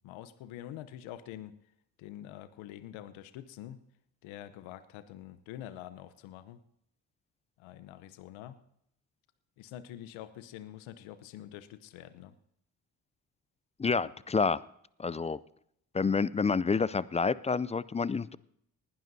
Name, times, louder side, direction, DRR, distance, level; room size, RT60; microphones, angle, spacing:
voice 1, 0.0-1.5 2.0-3.8 4.2-6.6 7.6-8.6 9.6-12.4, left 12 dB, 75° left, 12 dB, 0.9 m, -46 dB
voice 2, 13.8-14.6 15.0-15.4 15.9-18.4, left 4 dB, 15° left, 20 dB, 0.3 m, -28 dB
19.5 x 11.5 x 2.7 m, 0.72 s
hypercardioid pair, 45°, 47 cm